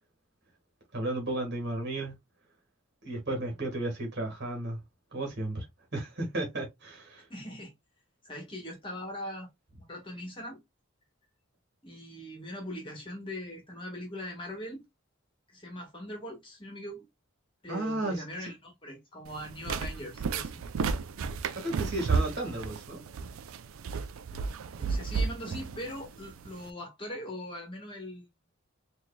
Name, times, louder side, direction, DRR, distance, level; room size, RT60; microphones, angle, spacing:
voice 1, 0.9-2.2 3.0-4.8 5.1-5.6 5.9-7.3 17.7-18.2 21.5-23.0, right 1 dB, 50° right, 1.6 m, -33 dB
voice 2, 7.3-7.7 8.2-9.5 9.8-10.6 11.8-14.8 15.5-17.0 17.6-20.6 24.8-28.3, equal, 25° left, 1.2 m, -41 dB
sound 1, 19.3-26.7, right 5 dB, 75° right, 0.4 m, -33 dB
4.6 x 2.6 x 2.2 m
head